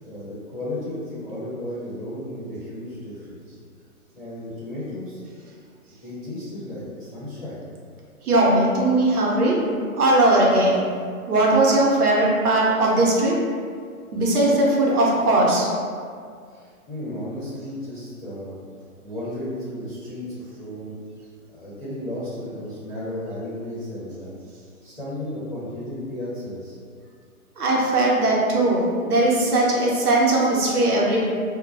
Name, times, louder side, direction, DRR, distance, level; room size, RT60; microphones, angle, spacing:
voice 1, 0.0-3.6 4.1-5.2 6.0-7.6 16.5-18.5 19.0-20.9 21.5-24.4 24.8-26.7, left 1 dB, 10° left, -21 dB, 0.6 m, -34 dB
voice 2, 8.2-9.6 10.0-10.8 11.3-13.3 14.1-15.7 27.6-31.2, right 2 dB, 80° right, -4 dB, 0.8 m, -19 dB
2.2 x 2.0 x 3.2 m, 2.1 s
hypercardioid pair, 170°, 45 cm